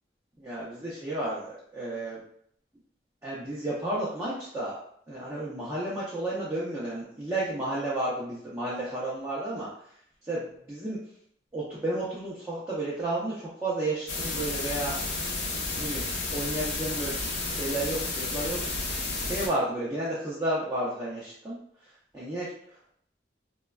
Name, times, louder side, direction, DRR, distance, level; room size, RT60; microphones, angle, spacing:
voice 1, 0.4-2.2 3.2-4.8 5.1-9.7 10.3-11.0 11.5-15.0 15.8-17.1 17.4-18.6 18.9-21.6 21.8-22.5, right 1 dB, 15° right, -8 dB, 0.5 m, -32 dB
sound 1, 14.1-19.5, left 3 dB, 80° left, 0.6 m, -31 dB
3.1 x 2.2 x 2.3 m, 0.68 s
head